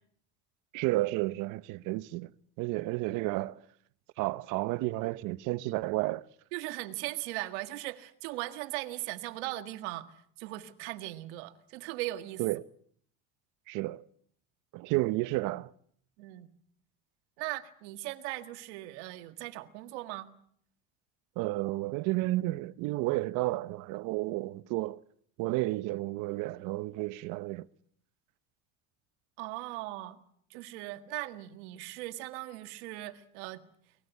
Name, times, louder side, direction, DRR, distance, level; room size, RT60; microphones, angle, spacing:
voice 1, 0.7-2.3 2.6-3.6 4.2-6.3 12.4-12.6 13.7-14.0 14.7-15.7 21.4-25.0 25.4-27.7, right 19 dB, 70° right, 0.9 m, -31 dB
voice 2, 6.5-12.4 16.2-16.5 17.4-20.3 24.2-24.5 29.4-30.2 30.5-33.6, right 17 dB, 85° right, 1.8 m, -39 dB
24.5 x 19.0 x 8.2 m
supercardioid pair, 110°, 33 cm